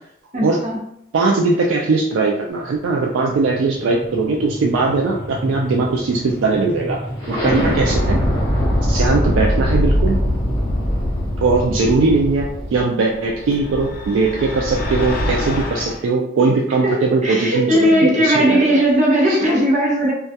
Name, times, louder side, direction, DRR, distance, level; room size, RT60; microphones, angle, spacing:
voice 1, 0.3-0.8 16.8-20.1, equal, 40° right, -1 dB, 0.6 m, -17 dB
voice 2, 1.1-7.0 7.3-8.2 8.9-10.2 11.4-18.8 19.3-19.4, right 3 dB, 85° right, 0 dB, 0.3 m, -19 dB
sound 1, 2.6-12.8, equal, 25° left, 0.8 m, -22 dB
sound 2, 13.1-16.0, left 1 dB, 50° left, 0.4 m, -26 dB
2.2 x 2.2 x 2.7 m, 0.75 s
head